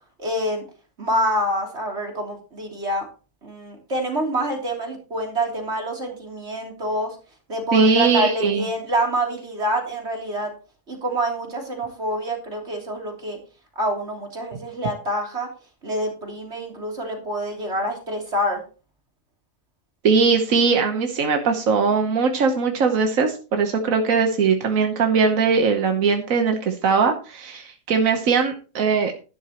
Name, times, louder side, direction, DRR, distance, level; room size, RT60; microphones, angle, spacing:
voice 1, 0.2-0.6 1.0-3.1 3.4-7.2 7.5-10.5 10.9-13.4 13.8-15.5 15.8-18.6, equal, 55° right, 0 dB, 3.6 m, -26 dB
voice 2, 7.7-8.7 20.0-29.1, right 5 dB, 85° right, 5 dB, 1.5 m, -20 dB
11.5 x 11.5 x 3.0 m, 0.35 s
omnidirectional pair, 1.4 m